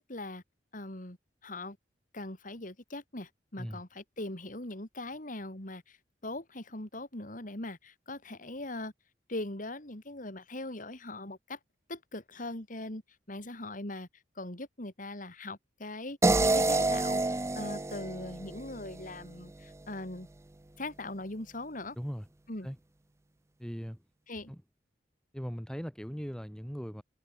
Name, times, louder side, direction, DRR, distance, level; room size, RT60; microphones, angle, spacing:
voice 1, 0.1-0.4 0.7-1.2 1.4-1.8 2.1-6.0 6.2-8.9 9.3-11.6 11.9-13.0 13.3-14.1 14.4-20.3 20.8-22.0 22.5-22.7 24.3-24.5, left 2 dB, 50° left, 3.5 m, -40 dB
sound 1, 16.2-19.3, right 2 dB, 15° right, 0.5 m, -28 dB
voice 2, 23.6-24.0 24.5-24.6 25.3-27.0, equal, 5° left, 5.3 m, -39 dB
head